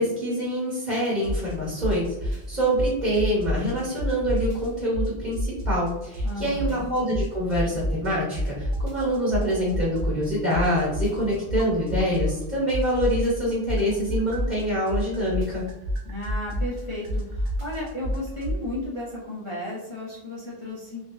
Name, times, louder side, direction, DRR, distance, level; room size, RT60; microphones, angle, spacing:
voice 1, 0.0-15.6, equal, 45° right, -7 dB, 1.4 m, -25 dB
sound 1, 1.2-1.5 1.8-3.7 4.0-5.9 6.1-8.1 8.3-12.4 12.7-18.6, equal, 60° right, 0.8 m, -28 dB
voice 2, 6.2-6.9 16.0-21.0, left 1 dB, 30° left, -7 dB, 0.7 m, -34 dB
3.7 x 2.6 x 2.6 m, 0.93 s
omnidirectional pair, 1.1 m